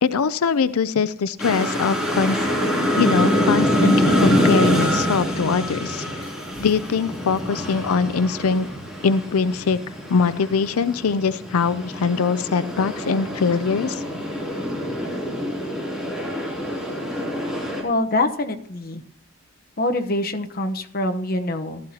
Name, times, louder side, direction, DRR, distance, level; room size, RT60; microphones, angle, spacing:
voice 1, 0.0-2.5 3.0-6.1 6.6-8.7 9.0-9.8 10.1-14.0, left 5 dB, 90° left, 14 dB, 0.5 m, -22 dB
sound 1, 1.4-17.8, equal, 5° right, 3.0 m, -25 dB
voice 2, 17.8-19.0 19.8-21.8, left 2 dB, 45° left, 6 dB, 1.0 m, -24 dB
15.5 x 13.0 x 2.9 m, 0.66 s
head